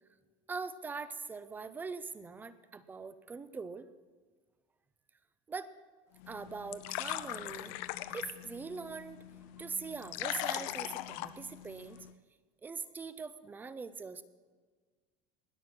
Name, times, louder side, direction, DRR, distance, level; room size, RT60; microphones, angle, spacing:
voice 1, 0.5-3.9 5.5-5.7 6.3-7.8 8.1-9.2 9.6-12.1 12.6-14.2, right 4 dB, 10° right, 14 dB, 0.4 m, -42 dB
sound 1, 6.2-12.1, left 15 dB, 60° left, 0.6 m, -41 dB
20.0 x 7.4 x 6.0 m, 1.5 s
cardioid pair, 175°, 16 cm